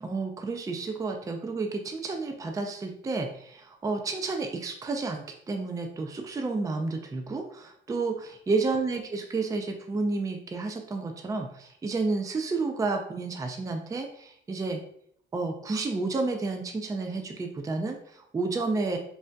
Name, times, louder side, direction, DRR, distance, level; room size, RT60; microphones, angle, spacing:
voice 1, 0.0-14.8 15.3-19.0, right 3 dB, 15° right, 4 dB, 0.4 m, -31 dB
3.3 x 2.6 x 2.2 m, 0.66 s
cardioid pair, 90°, 20 cm